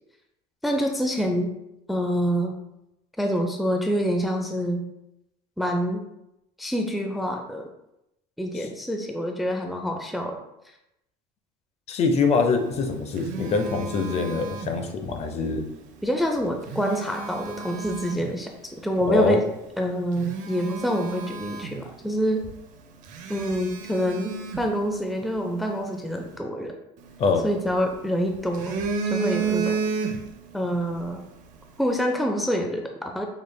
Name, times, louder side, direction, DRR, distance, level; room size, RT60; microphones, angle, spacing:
voice 1, 0.6-1.5 1.9-2.6 3.2-4.9 5.6-6.0 6.6-7.7 8.4-10.4 16.0-18.5 18.8-19.4 19.8-22.4 23.3-26.7 27.4-28.8 29.1-29.8 30.5-31.2 31.8-33.2, equal, ahead, 3 dB, 0.4 m, -26 dB
voice 2, 11.9-15.6 19.1-19.4 27.2-27.4, left 4 dB, 45° left, 6 dB, 0.6 m, -24 dB
Telephone, 12.6-15.2 16.4-18.3 19.0-19.1 19.7-19.8 20.1-22.2 22.4-22.6 23.1-25.4 27.0-28.0 28.3-30.5 30.8-31.0, right 5 dB, 60° right, 0.7 m, -32 dB
5.1 x 3.1 x 2.2 m, 0.86 s
supercardioid pair, 100°, 15 cm